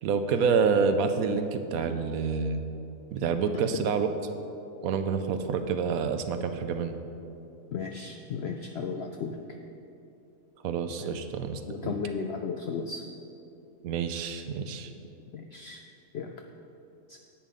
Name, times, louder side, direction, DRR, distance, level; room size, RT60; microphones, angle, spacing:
voice 1, 0.0-2.6 3.1-4.1 4.8-7.0 10.6-11.9 13.8-14.9, right 5 dB, 75° right, 8 dB, 1.0 m, -28 dB
voice 2, 7.7-9.4 11.0-11.1 11.7-13.0 15.3-15.8 16.1-16.3 17.1-17.2, left 5 dB, 75° left, 4 dB, 0.6 m, -35 dB
10.0 x 8.4 x 3.7 m, 2.8 s
omnidirectional pair, 1.6 m